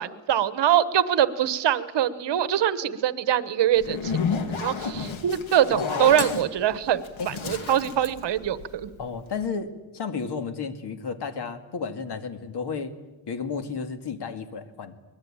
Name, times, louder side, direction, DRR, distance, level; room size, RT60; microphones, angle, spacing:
voice 1, 0.0-4.1 4.6-8.9, right 10 dB, 60° right, 14 dB, 1.2 m, -23 dB
Zipper (clothing), 3.8-9.0, left 5 dB, 80° left, 2.6 m, -31 dB
voice 2, 5.7-6.1 7.2-7.3 9.0-12.9 13.3-15.0, left 5 dB, 55° left, 8 dB, 2.3 m, -32 dB
24.0 x 21.0 x 8.9 m, 1.1 s
wide cardioid pair, 155°, 46 cm